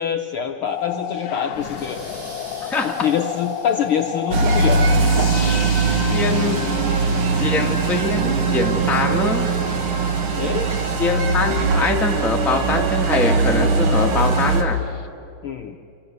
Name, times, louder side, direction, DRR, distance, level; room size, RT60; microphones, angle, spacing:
voice 1, 0.0-2.0 2.8-4.9 10.4-10.7 15.4-15.8, left 8 dB, 90° left, 4 dB, 1.1 m, -25 dB
sound 1, 0.6-8.2 9.0-12.0 14.6-15.1, left 9 dB, 65° left, 2.3 m, -33 dB
sound 2, 1.5-5.0, right 1 dB, 85° right, 8.8 m, -45 dB
voice 2, 2.6-3.0 6.1-6.6 7.4-9.5 11.0-14.8, left 3 dB, ahead, 1 dB, 0.7 m, -23 dB
sound 3, 4.3-14.6, right 3 dB, 50° right, 2.3 m, -20 dB
28.0 x 24.5 x 8.0 m, 2.7 s
omnidirectional pair, 3.6 m